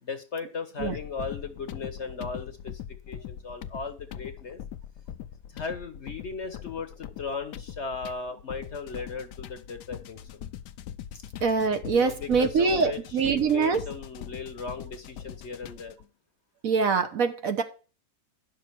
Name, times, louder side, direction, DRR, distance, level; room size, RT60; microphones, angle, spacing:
voice 1, 0.0-2.8 3.1-4.6 5.5-10.2 11.1-11.2 11.9-16.0, left 4 dB, 50° left, 9 dB, 1.1 m, -37 dB
sound 1, 0.8-16.0, left 10 dB, 85° left, 1.2 m, -41 dB
voice 2, 11.4-13.8 16.6-17.6, right 5 dB, 60° right, 8 dB, 1.3 m, -24 dB
10.0 x 6.5 x 4.5 m, 0.36 s
omnidirectional pair, 1.8 m